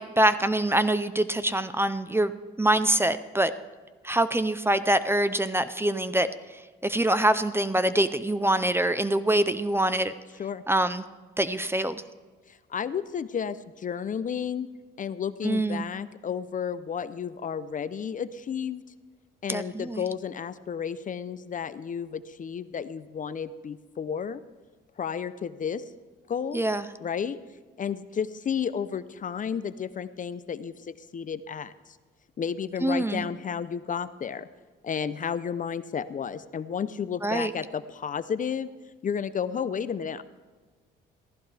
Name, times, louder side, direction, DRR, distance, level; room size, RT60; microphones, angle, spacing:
voice 1, 0.0-3.5 4.0-10.1 10.7-11.0 11.4-12.0 15.4-15.8 19.5-20.0 26.5-26.9 32.8-33.3 37.2-37.5, right 1 dB, 10° right, 13 dB, 0.6 m, -25 dB
voice 2, 12.5-14.7 15.0-18.8 19.4-24.4 25.0-25.8 26.3-26.6 27.0-27.4 27.8-31.7 32.4-34.5 34.8-38.7 39.0-40.2, left 7 dB, 40° left, 14 dB, 0.6 m, -32 dB
16.0 x 15.0 x 3.4 m, 1.4 s
cardioid pair, 90°, 20 cm